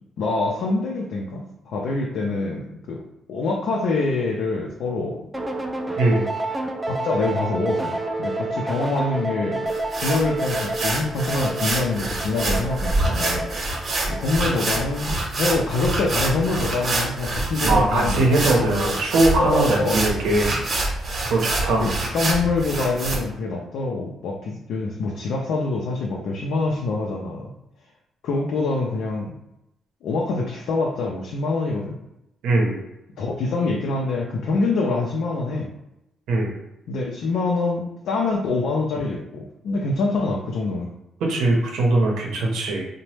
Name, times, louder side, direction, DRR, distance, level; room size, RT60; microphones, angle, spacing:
voice 1, 0.2-3.0 3.3-5.2 6.8-13.7 14.1-19.0 19.4-20.0 21.8-27.5 28.2-29.3 30.0-32.0 33.2-35.7 36.9-40.9, left 3 dB, 75° left, -2 dB, 0.5 m, -25 dB
sound 1, 5.3-14.7, right 2 dB, 15° right, 0.4 m, -29 dB
sound 2, 9.7-23.2, right 2 dB, 45° right, 0.9 m, -26 dB
voice 2, 17.6-20.5 21.3-21.8 32.4-32.8 36.3-36.5 41.2-42.9, right 2 dB, 85° right, 0 dB, 0.7 m, -20 dB
2.9 x 2.1 x 3.2 m, 0.87 s
cardioid pair, 90°, 0 cm